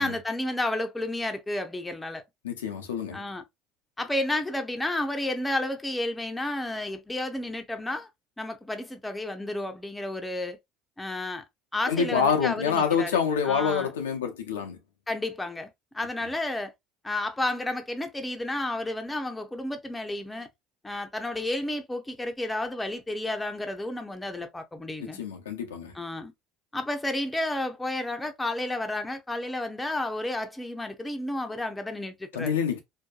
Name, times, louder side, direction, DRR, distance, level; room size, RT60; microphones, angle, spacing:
voice 1, 0.0-2.2 3.1-3.4 4.0-8.1 8.4-10.6 11.0-11.4 11.7-13.9 15.1-16.7 17.0-20.5 20.8-25.2 25.9-26.3 26.7-32.6, left 1 dB, 10° left, 0.6 m, -31 dB
voice 2, 2.4-3.2 11.9-14.8 25.2-25.9 32.3-32.8, left 6 dB, 90° left, 0.5 m, -27 dB
2.6 x 2.2 x 2.2 m
hypercardioid pair, 70°, 0 cm